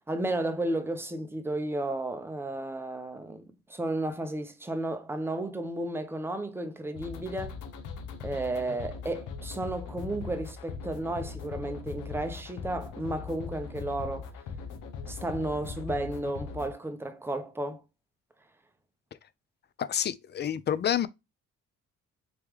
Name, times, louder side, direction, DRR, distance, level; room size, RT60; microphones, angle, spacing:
voice 1, 0.1-7.6 8.2-14.3 15.0-17.8, right 1 dB, 10° right, 0.6 m, -33 dB
sound 1, 7.0-16.7, left 5 dB, 90° left, 0.8 m, -40 dB
voice 2, 19.8-21.1, left 9 dB, 35° left, 0.4 m, -28 dB
3.2 x 3.0 x 3.5 m
cardioid pair, 90°, 30 cm